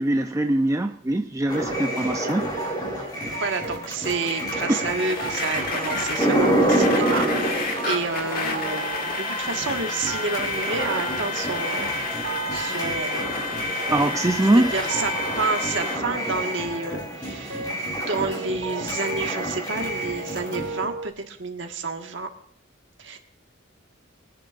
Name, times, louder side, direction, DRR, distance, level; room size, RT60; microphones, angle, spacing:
voice 1, 0.0-2.5 13.9-14.7 17.7-17.8, right 1 dB, 15° right, 5 dB, 0.4 m, -22 dB
sound 1, 1.5-20.9, right 1 dB, 20° left, 3.4 m, -28 dB
sound 2, 2.6-4.9 5.2-5.6 5.9-6.4 6.6-7.5 7.8-9.8 10.1-21.1, right 4 dB, 90° right, 1.5 m, -37 dB
voice 2, 3.0-13.6 14.6-22.3 23.0-23.2, right 3 dB, 60° right, 4 dB, 1.5 m, -30 dB
sound 3, 5.0-16.0, left 3 dB, 45° left, 1.6 m, -31 dB
23.0 x 10.5 x 2.5 m, 0.68 s
head